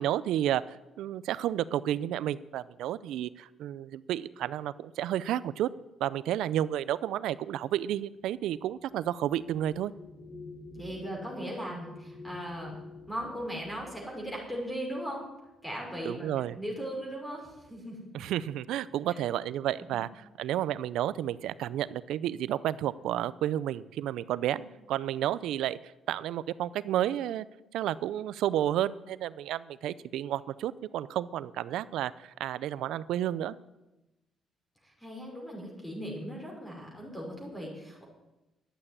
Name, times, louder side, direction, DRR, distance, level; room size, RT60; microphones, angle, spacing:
voice 1, 0.0-5.7 6.0-9.9 16.0-16.6 18.1-24.6 24.9-27.4 27.7-33.6, right 12 dB, 85° right, 18 dB, 0.5 m, -31 dB
sound 1, 6.8-15.7 16.7-16.8 17.2-17.7, left 3 dB, 50° left, 5.8 m, -50 dB
voice 2, 10.7-12.8 13.1-15.2 15.6-16.3 16.5-18.0 19.1-19.2 19.9-20.0 24.5-24.6 34.8-38.0, equal, 10° left, -2 dB, 5.6 m, -38 dB
11.5 x 8.8 x 9.7 m, 0.99 s
cardioid pair, 90°, 0 cm